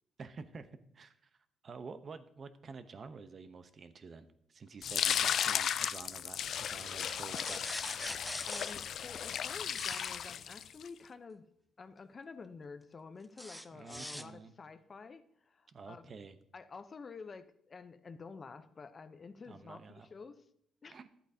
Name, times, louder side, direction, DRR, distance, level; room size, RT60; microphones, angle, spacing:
voice 1, 0.2-0.7 0.9-1.3 1.6-7.6 13.7-14.5 15.7-16.4 19.5-20.1 20.9-21.1, right 4 dB, 45° right, 10 dB, 0.8 m, -49 dB
sound 1, 4.8-10.9, left 8 dB, 65° left, 0.3 m, -35 dB
sound 2, 7.4-8.8 9.7-10.1 13.4-14.2, equal, ahead, 0.5 m, -42 dB
voice 2, 8.5-11.5 11.8-16.2 16.5-20.4 20.8-21.0, left 4 dB, 40° left, 11 dB, 0.7 m, -50 dB
12.0 x 8.2 x 2.8 m, 0.70 s
cardioid pair, 90°, 0 cm